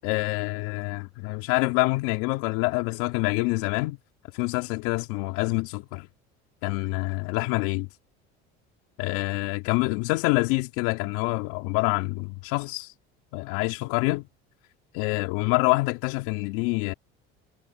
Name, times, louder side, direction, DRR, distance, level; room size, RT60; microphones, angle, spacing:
voice 1, 0.0-4.0 4.3-6.1 6.6-7.9 9.0-12.9 13.3-14.2 14.9-16.9, left 25 dB, 75° left, 3.2 m, -26 dB
supercardioid pair, 85°, 30 cm